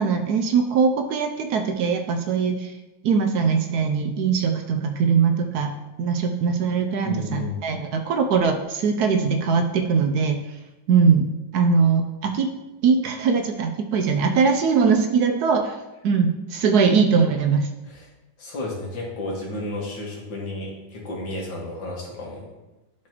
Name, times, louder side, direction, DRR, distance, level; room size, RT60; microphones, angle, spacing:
voice 1, 0.0-2.7 3.0-5.7 6.0-10.4 10.9-11.3 11.5-12.5 12.8-15.8 16.0-17.7, right 5 dB, 70° right, 5 dB, 1.0 m, -21 dB
voice 2, 7.0-7.7 17.9-18.1 18.4-22.5, left 2 dB, 85° left, -3 dB, 2.4 m, -32 dB
11.5 x 4.7 x 3.0 m, 1.0 s
omnidirectional pair, 2.0 m